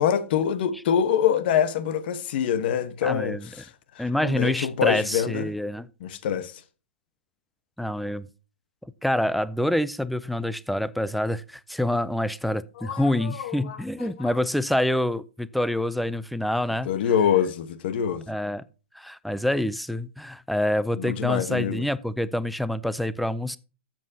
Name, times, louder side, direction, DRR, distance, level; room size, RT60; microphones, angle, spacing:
voice 1, 0.0-5.5 6.0-6.6 12.8-14.3 16.8-18.3 21.0-21.8, left 8 dB, 55° left, 1.1 m, -25 dB
voice 2, 3.0-3.5 4.0-5.9 7.8-8.3 9.0-16.9 18.3-18.6 18.9-23.6, left 1 dB, ahead, 0.4 m, -26 dB
13.5 x 7.5 x 2.8 m
hypercardioid pair, 145°, 6 cm